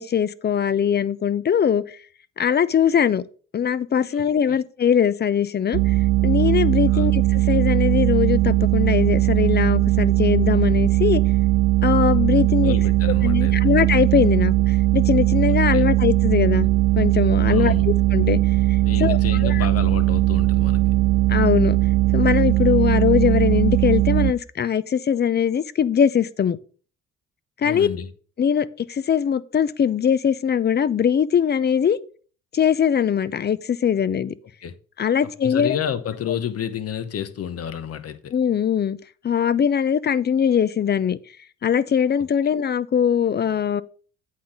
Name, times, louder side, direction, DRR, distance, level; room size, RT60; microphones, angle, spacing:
voice 1, 0.0-2.0 2.4-3.2 3.5-5.9 6.2-11.2 11.8-12.8 13.2-16.7 17.0-18.4 18.7-19.7 21.3-21.8 22.1-26.6 27.6-27.9 28.4-32.0 32.5-34.3 35.0-35.8 38.3-39.0 39.2-41.2 41.6-43.8, left 8 dB, 35° left, 0.5 m, -21 dB
voice 2, 4.1-4.6 6.9-7.1 12.6-13.6 15.7-15.8 17.4-17.9 18.8-20.8 27.6-28.1 34.6-34.8 35.2-38.3, left 9 dB, 50° left, 0.9 m, -30 dB
sound 1, 5.7-24.3, right 15 dB, 65° right, 0.5 m, -19 dB
8.4 x 3.9 x 5.8 m
cardioid pair, 90°, 30 cm